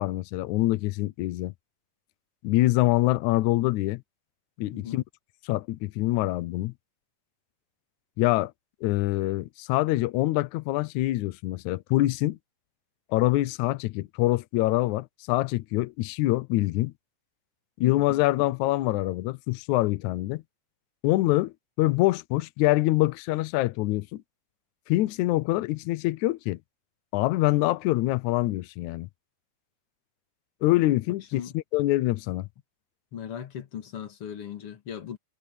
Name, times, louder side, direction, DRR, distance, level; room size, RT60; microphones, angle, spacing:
voice 1, 0.0-1.5 2.4-4.0 4.6-5.0 5.4-6.7 8.2-8.5 8.8-12.4 13.1-16.9 17.8-20.4 21.0-24.2 24.9-26.6 27.1-29.1 30.6-32.5, left 17 dB, 85° left, 1.7 m, -25 dB
voice 2, 33.1-35.2, left 8 dB, 45° left, 2.7 m, -38 dB
omnidirectional pair, 4.3 m